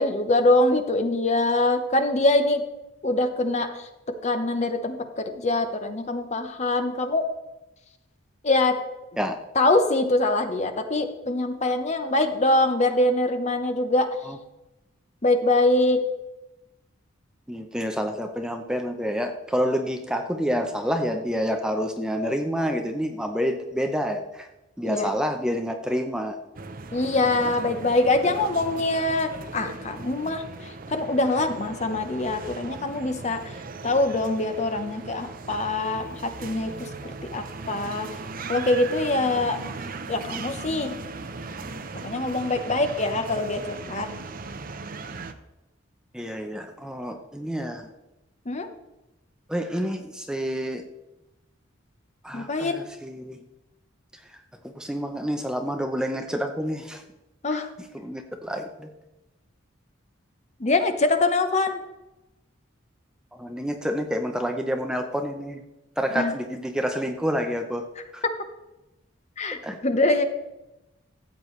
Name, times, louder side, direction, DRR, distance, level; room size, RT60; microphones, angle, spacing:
voice 1, 0.0-2.6 3.0-3.9 4.2-7.3 8.4-8.8 9.5-14.1 15.2-16.0 24.8-25.1 26.9-33.5 33.8-38.1 38.5-39.6 40.1-41.0 42.0-44.1 48.5-48.7 52.3-52.8 57.4-57.7 60.6-61.8 66.1-66.3 68.2-68.3 69.4-70.2, left 2 dB, 35° left, 7 dB, 0.8 m, -24 dB
voice 2, 17.5-24.5 24.8-26.4 46.1-47.9 49.5-50.8 52.2-53.4 54.6-57.0 58.0-58.9 63.4-65.6 66.0-67.9 68.1-68.2 69.6-69.8, equal, 5° right, 4 dB, 0.6 m, -28 dB
sound 1, 26.5-45.3, right 3 dB, 45° right, 0.6 m, -38 dB
13.5 x 8.2 x 3.1 m, 0.97 s
head